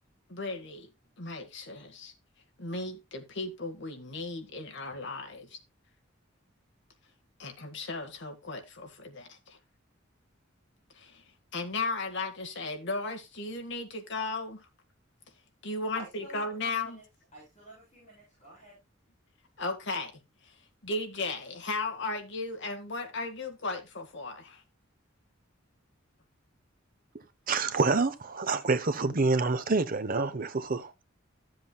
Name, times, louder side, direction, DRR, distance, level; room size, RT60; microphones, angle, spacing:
voice 1, 0.3-0.9 1.2-2.1 2.6-5.6 7.4-9.6 10.9-11.2 11.5-14.7 15.6-17.0 19.6-20.5 20.8-24.6, left 3 dB, 60° left, 1.8 m, -36 dB
voice 2, 15.9-18.8, right 1 dB, 35° left, 7.7 m, -50 dB
voice 3, 27.5-31.0, right 3 dB, 45° right, 0.9 m, -27 dB
14.0 x 7.6 x 2.4 m
head